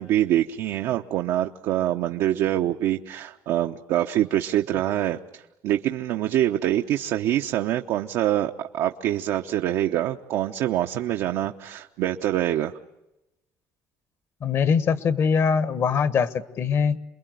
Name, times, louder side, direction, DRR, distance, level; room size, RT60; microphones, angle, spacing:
voice 1, 0.0-12.7, right 12 dB, 80° right, 4 dB, 0.9 m, -25 dB
voice 2, 14.4-17.0, left 6 dB, 50° left, 13 dB, 1.3 m, -22 dB
28.5 x 21.5 x 9.3 m, 0.95 s
cardioid pair, 115°, 6 cm